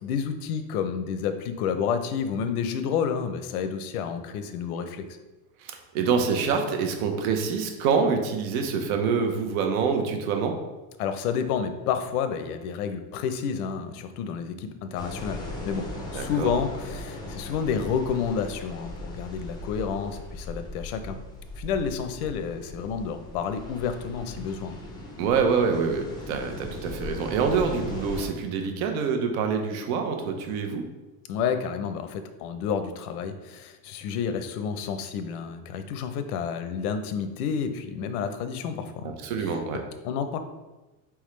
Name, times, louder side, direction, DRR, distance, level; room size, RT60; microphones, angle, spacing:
voice 1, 0.0-5.1 11.0-21.2 21.6-24.7 31.3-39.1 39.4-40.4, left 7 dB, 90° left, 9 dB, 0.7 m, -30 dB
voice 2, 5.6-10.6 16.1-16.5 25.2-30.8 39.0-39.8, right 5 dB, 75° right, 5 dB, 0.9 m, -26 dB
sound 1, 15.0-28.3, left 1 dB, 10° left, 0.4 m, -38 dB
4.4 x 3.6 x 3.1 m, 1.1 s
cardioid pair, 155°, 43 cm